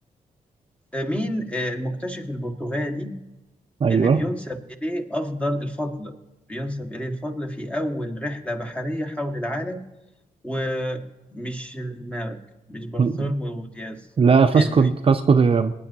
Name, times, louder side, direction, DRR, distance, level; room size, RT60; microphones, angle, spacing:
voice 1, 0.9-3.2 3.9-6.1 6.5-9.8 10.4-11.0 11.3-12.4 12.7-14.1 14.5-14.9, equal, 10° left, 2 dB, 1.6 m, -29 dB
voice 2, 3.8-4.2 13.0-13.3 14.2-15.7, right 5 dB, 40° right, 7 dB, 0.6 m, -18 dB
19.0 x 10.0 x 2.8 m, 1.0 s
cardioid pair, 75°, 14 cm